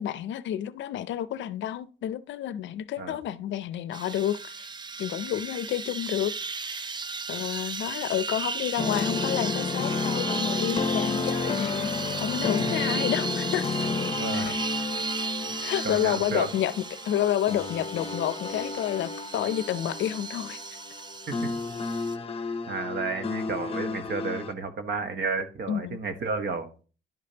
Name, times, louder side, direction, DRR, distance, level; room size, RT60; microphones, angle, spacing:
voice 1, 0.0-4.7 5.0-6.3 6.7-6.9 7.3-11.9 12.2-13.9 14.3-14.7 15.6-16.7 17.1-20.6 25.7-26.0, left 11 dB, 70° left, 0.5 m, -30 dB
sound 1, 3.9-22.2, right 4 dB, 20° right, 0.4 m, -35 dB
sound 2, 8.8-24.5, left 4 dB, 30° left, 0.7 m, -32 dB
voice 2, 14.1-14.6 15.8-16.5 21.3-21.5 22.7-26.7, right 4 dB, 60° right, 1.1 m, -32 dB
11.0 x 5.1 x 2.8 m
cardioid pair, 90°, 20 cm